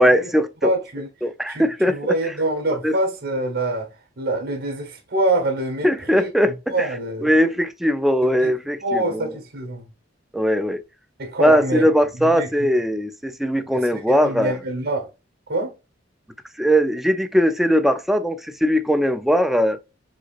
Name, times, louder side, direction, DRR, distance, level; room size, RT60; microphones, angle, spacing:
voice 1, 0.0-0.7 1.2-2.1 2.8-2.9 5.8-6.9 7.2-9.3 10.3-10.8 11.4-14.6 16.6-19.8, equal, ahead, 0.3 m, -20 dB
voice 2, 0.6-1.1 1.5-3.9 4.2-5.9 6.1-6.3 6.7-7.3 8.2-8.5 8.8-9.9 11.2-11.9 12.2-12.5 13.7-15.1 15.5-15.7, right 2 dB, 55° right, 1.2 m, -25 dB
6.4 x 2.9 x 2.5 m
head